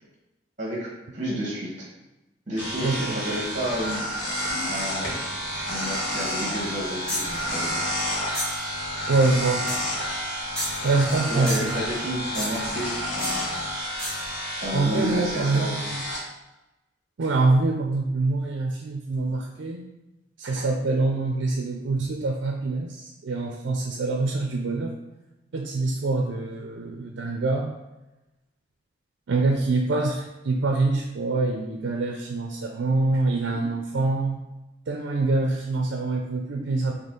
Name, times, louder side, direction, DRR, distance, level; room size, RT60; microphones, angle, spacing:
voice 1, 0.6-1.9 2.5-5.2 5.7-7.9 11.3-13.5 14.6-15.8, equal, 40° right, -4 dB, 1.1 m, -31 dB
sound 1, 2.6-16.2, equal, 75° left, 1.4 m, -30 dB
voice 2, 2.8-3.2 4.5-4.7 9.1-9.7 10.8-11.8 14.7-16.0 17.2-19.9 20.4-25.0 25.5-27.7 29.3-34.5 34.9-36.9, right 3 dB, 80° right, 1 dB, 0.5 m, -25 dB
sound 2, 7.1-7.4 8.3-8.7 9.7-9.9 10.5-11.2 11.5-11.8 12.3-12.7 13.2-13.4 14.0-14.3, left 1 dB, 5° left, 1.2 m, -32 dB
4.2 x 2.8 x 3.7 m, 1.0 s
head